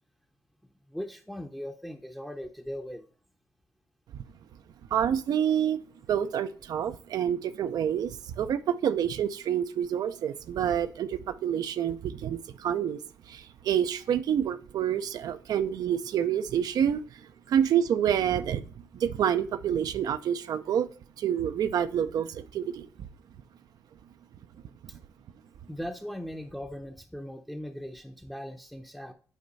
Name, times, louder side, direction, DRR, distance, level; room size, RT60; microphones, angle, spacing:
voice 1, 0.9-3.1 24.9-25.0 25.7-29.1, equal, ahead, 4 dB, 0.7 m, -39 dB
voice 2, 4.9-5.8 6.1-13.0 13.3-22.9, right 9 dB, 70° right, 11 dB, 0.5 m, -28 dB
8.3 x 4.6 x 4.0 m, 0.41 s
cardioid pair, 75°, 7 cm